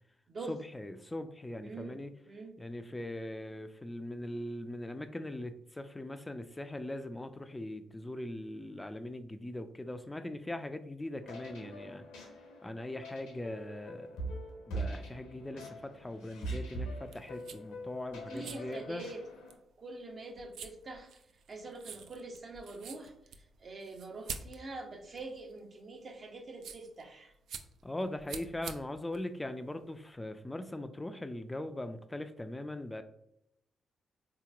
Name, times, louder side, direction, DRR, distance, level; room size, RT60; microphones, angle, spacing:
voice 1, 0.5-2.1 2.6-12.0 12.6-14.1 14.7-19.1 27.8-33.0, left 1 dB, 20° left, 8 dB, 0.3 m, -40 dB
voice 2, 1.6-2.0 2.3-2.6 18.3-19.2 19.8-21.2 21.5-27.3, right 2 dB, 50° right, 3 dB, 0.7 m, -45 dB
sound 1, 11.2-19.5, right 2 dB, 80° left, 0.7 m, -43 dB
sound 2, 17.0-30.1, right 6 dB, 70° right, 0.3 m, -49 dB
3.7 x 2.9 x 2.3 m, 0.78 s
hypercardioid pair, 40°, 0 cm